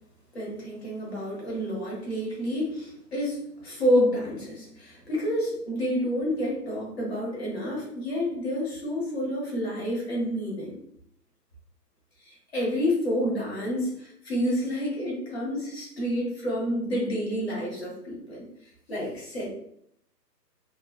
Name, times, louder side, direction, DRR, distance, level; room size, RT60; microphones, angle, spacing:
voice 1, 0.3-3.4 3.6-10.8 12.2-18.4 18.9-19.5, equal, 40° left, -5 dB, 1.1 m, -29 dB
3.0 x 2.1 x 2.3 m, 0.73 s
hypercardioid pair, 165°, 49 cm